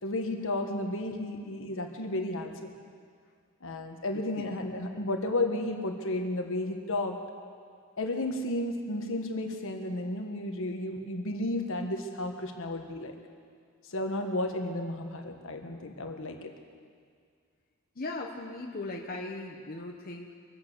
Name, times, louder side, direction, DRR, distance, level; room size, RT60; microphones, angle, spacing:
voice 1, 0.0-2.7 3.6-7.2 8.0-13.1 13.9-16.5, left 1 dB, 65° left, 4 dB, 1.5 m, -33 dB
voice 2, 4.1-4.5 18.0-20.3, left 2 dB, 45° left, 0 dB, 1.1 m, -38 dB
23.0 x 8.6 x 6.8 m, 2.1 s
head